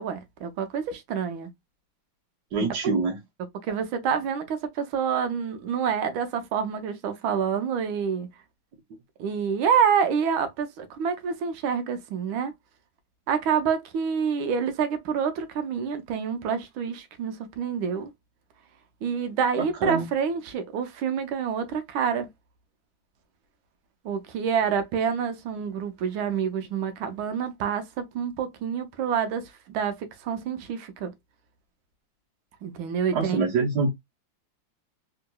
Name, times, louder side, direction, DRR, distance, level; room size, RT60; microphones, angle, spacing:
voice 1, 0.0-1.5 3.6-8.3 9.2-12.5 13.3-18.1 19.0-22.3 24.0-29.9 30.2-31.1 32.6-33.5, right 7 dB, 90° right, 1.5 m, -27 dB
voice 2, 2.5-3.2 19.6-20.0 33.1-33.9, right 4 dB, 65° right, 1.4 m, -25 dB
3.6 x 2.8 x 2.2 m
omnidirectional pair, 2.2 m